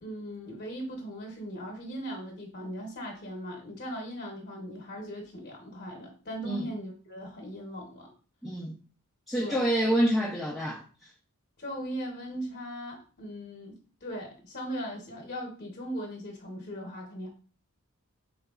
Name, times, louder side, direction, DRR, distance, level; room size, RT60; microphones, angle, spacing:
voice 1, 0.0-8.1 9.4-9.6 11.6-17.3, equal, 50° left, 0.9 m, -39 dB
voice 2, 8.4-8.8 9.3-10.8, right 1 dB, ahead, 0.5 m, -27 dB
4.6 x 3.9 x 2.3 m
head